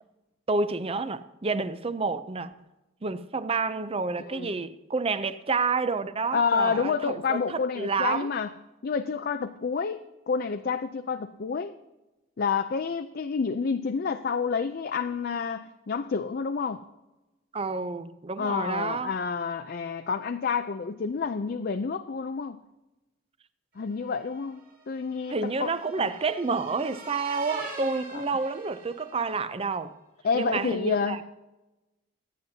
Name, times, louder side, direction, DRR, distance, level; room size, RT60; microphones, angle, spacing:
voice 1, 0.5-2.5 3.0-8.3 17.5-19.1 25.3-29.9 30.3-31.2, right 4 dB, 30° right, 0.5 m, -29 dB
voice 2, 6.3-8.5 8.8-10.0 10.3-11.7 12.4-16.8 18.4-22.6 23.8-24.6 24.9-25.7 26.0-26.1 30.2-31.2, left 5 dB, 50° left, 0.4 m, -29 dB
sound 1, 24.0-29.4, right 3 dB, 45° right, 3.4 m, -43 dB
24.5 x 9.5 x 2.8 m
head